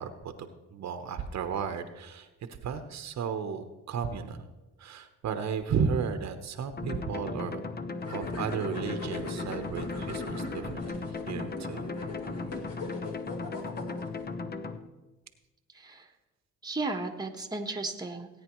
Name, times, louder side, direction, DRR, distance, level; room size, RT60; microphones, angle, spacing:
voice 1, 0.0-4.5 4.8-7.6 8.1-11.9, right 6 dB, 65° right, 8 dB, 1.0 m, -34 dB
sound 1, 6.8-14.8, left 3 dB, 30° left, 0.8 m, -37 dB
sound 2, 8.0-14.3, left 1 dB, 55° left, 2.4 m, -41 dB
voice 2, 15.7-16.1 16.6-18.3, right 3 dB, 15° right, 4 dB, 1.2 m, -34 dB
18.0 x 9.3 x 3.1 m, 1.1 s
cardioid pair, 90°, 30 cm